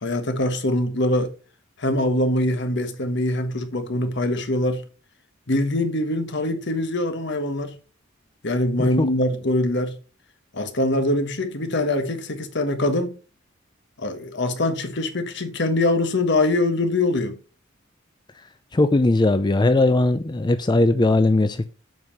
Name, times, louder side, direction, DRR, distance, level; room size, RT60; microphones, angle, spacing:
voice 1, 0.0-1.3 1.8-4.8 5.5-7.8 8.4-9.9 10.5-13.2 14.0-17.4, left 1 dB, 60° left, 1.3 m, -23 dB
voice 2, 18.7-21.7, left 2 dB, 20° left, 0.5 m, -19 dB
7.8 x 5.6 x 5.5 m
head